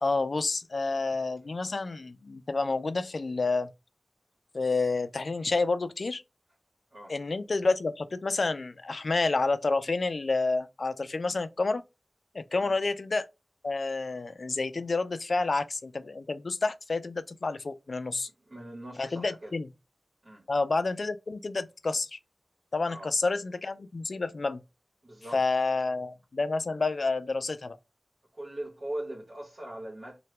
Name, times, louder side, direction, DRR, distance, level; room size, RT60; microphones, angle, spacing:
voice 1, 0.0-3.7 4.5-6.2 7.1-11.8 12.3-13.3 13.6-18.3 19.0-19.7 20.5-22.2 22.7-24.6 25.3-27.8, left 3 dB, 75° left, 0.3 m, -29 dB
voice 2, 18.5-19.5 20.2-20.4 22.9-23.1 25.0-25.4 28.4-30.2, right 1 dB, 65° right, 1.1 m, -40 dB
2.8 x 2.2 x 3.2 m
wide cardioid pair, 70°, 0 cm